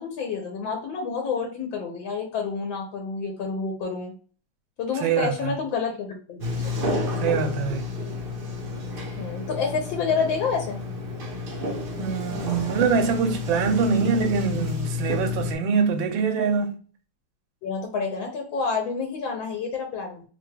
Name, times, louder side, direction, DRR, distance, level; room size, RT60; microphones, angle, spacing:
voice 1, 0.0-4.1 4.8-6.7 9.2-10.8 17.6-20.2, left 5 dB, 80° left, 1.4 m, -29 dB
voice 2, 5.0-5.6 7.2-7.8 12.0-16.7, right 5 dB, 85° right, 1.4 m, -24 dB
Sliding door, 6.4-15.6, left 3 dB, 60° right, 0.6 m, -30 dB
3.4 x 2.2 x 3.2 m
omnidirectional pair, 2.1 m